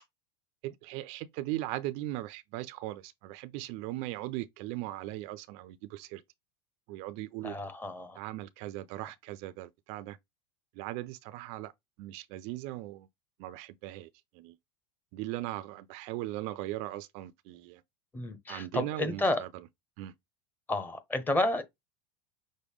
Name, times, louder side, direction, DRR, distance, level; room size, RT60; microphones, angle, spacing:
voice 1, 0.6-6.2 6.9-7.6 8.2-10.2 10.8-11.7 12.0-13.1 13.4-14.1 14.3-14.6 15.1-17.8 18.5-19.5 20.0-20.1, right 16 dB, 55° right, 0.4 m, -38 dB
voice 2, 7.4-8.2 18.1-19.4 20.7-21.6, left 2 dB, 15° left, 0.8 m, -31 dB
6.1 x 2.1 x 3.5 m
supercardioid pair, 135°, 13 cm